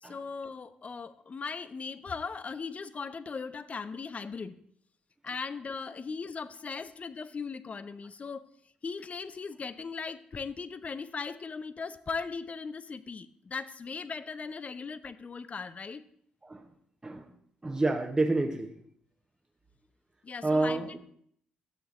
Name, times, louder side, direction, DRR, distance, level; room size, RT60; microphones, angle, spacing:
voice 1, 0.0-4.6 5.2-8.5 8.8-16.0 20.2-20.8, left 5 dB, 40° left, 15 dB, 0.5 m, -38 dB
voice 2, 17.6-18.7 20.4-21.0, right 2 dB, 20° right, 2 dB, 0.9 m, -28 dB
13.0 x 7.9 x 2.5 m, 0.64 s
hypercardioid pair, 45°, 4 cm